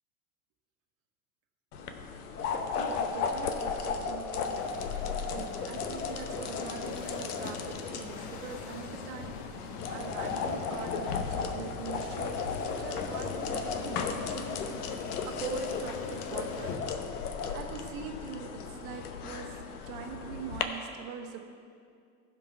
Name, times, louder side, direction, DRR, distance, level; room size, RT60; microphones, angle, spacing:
sound 1, 1.7-20.6, left 5 dB, 85° left, 0.9 m, -35 dB
voice 1, 2.7-4.6 5.3-12.4 12.6-14.6 15.3-16.8 17.5-21.4, right 5 dB, 70° right, 3 dB, 1.4 m, -42 dB
sound 2, 4.3-16.8, left 5 dB, 60° left, 1.2 m, -43 dB
14.5 x 5.3 x 5.6 m, 2.3 s
hypercardioid pair, 80°, 44 cm